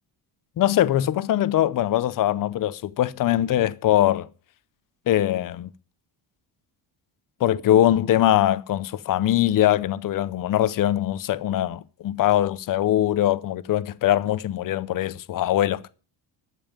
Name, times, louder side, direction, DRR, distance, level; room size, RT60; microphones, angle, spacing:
voice 1, 0.6-4.3 5.1-5.7 7.4-15.9, left 12 dB, 45° left, 0.6 m, -22 dB
12.5 x 5.5 x 8.9 m
cardioid pair, 170°, 44 cm